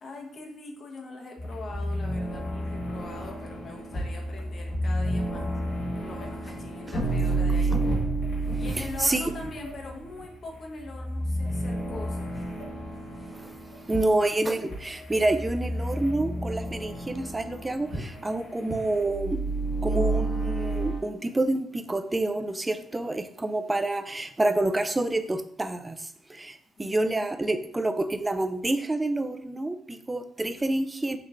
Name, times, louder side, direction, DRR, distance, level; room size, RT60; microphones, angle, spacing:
voice 1, 0.0-7.8 8.6-12.3 26.8-26.9, left 3 dB, 50° left, 1 dB, 0.9 m, -42 dB
sound 1, 1.4-21.0, right 2 dB, 65° left, 1.5 m, -31 dB
voice 2, 8.8-9.3 13.3-13.5 13.9-19.4 19.8-31.2, right 2 dB, 20° right, 9 dB, 0.5 m, -28 dB
3.9 x 3.1 x 3.4 m, 0.69 s
hypercardioid pair, 45°, 0 cm